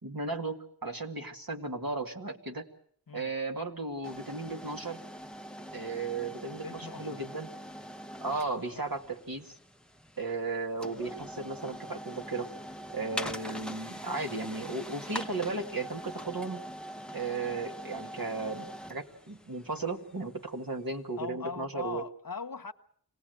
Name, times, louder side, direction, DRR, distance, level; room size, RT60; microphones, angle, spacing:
voice 1, 0.0-2.7 3.1-5.0 5.7-7.5 8.2-9.5 10.2-12.5 12.9-16.6 17.1-22.0, right 3 dB, 60° right, 2.3 m, -35 dB
sound 1, 4.0-20.9, equal, ahead, 0.9 m, -43 dB
voice 2, 6.6-7.2 8.3-8.4 8.7-8.9 21.2-22.7, left 5 dB, 55° left, 1.0 m, -40 dB
26.0 x 18.0 x 8.0 m
wide cardioid pair, 50°, 40 cm